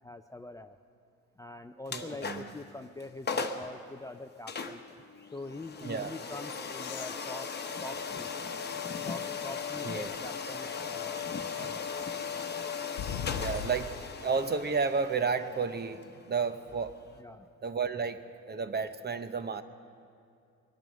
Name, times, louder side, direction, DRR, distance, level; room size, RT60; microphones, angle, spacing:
voice 1, 0.0-0.8 1.4-4.8 5.3-8.3 9.0-11.9 17.2-17.5, left 2 dB, 10° left, 7 dB, 0.5 m, -44 dB
sound 1, 1.9-2.6 3.0-3.1 3.3-3.7 4.5-17.2, left 5 dB, 35° left, 1.1 m, -38 dB
voice 2, 1.9-2.5 5.8-6.1 9.8-10.1 13.3-16.0 16.3-16.9 17.6-18.2 18.5-19.6, right 5 dB, 35° right, 10 dB, 0.9 m, -32 dB
sound 2, 6.7-9.5 10.1-10.2 12.9-14.2 16.0-16.1, left 9 dB, 90° left, 0.6 m, -42 dB
22.5 x 9.0 x 6.4 m, 2.5 s
cardioid pair, 90°, 30 cm